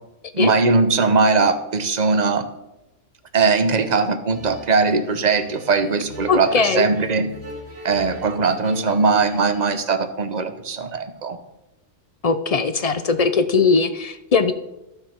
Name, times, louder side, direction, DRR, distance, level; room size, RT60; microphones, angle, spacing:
voice 1, 0.3-2.5 3.3-7.3 7.8-11.4, right 4 dB, 40° right, 9 dB, 0.8 m, -20 dB
sound 1, 4.3-9.7, equal, 90° right, 2.7 m, -39 dB
voice 2, 6.3-6.8 12.2-14.5, left 5 dB, 50° left, 10 dB, 0.4 m, -19 dB
13.5 x 6.7 x 4.4 m, 0.92 s
omnidirectional pair, 1.4 m